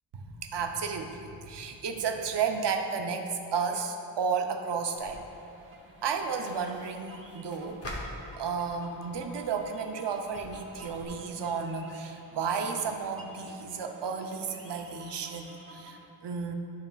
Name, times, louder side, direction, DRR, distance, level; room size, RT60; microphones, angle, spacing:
voice 1, 0.1-5.2 6.0-7.8 8.4-16.5, right 5 dB, 70° right, 4 dB, 0.6 m, -33 dB
sound 1, 4.9-16.0, right 2 dB, 30° right, 0.9 m, -52 dB
sound 2, 5.0-11.0, left 1 dB, 35° left, 0.9 m, -46 dB
11.0 x 5.5 x 2.3 m, 2.7 s
wide cardioid pair, 170°, 43 cm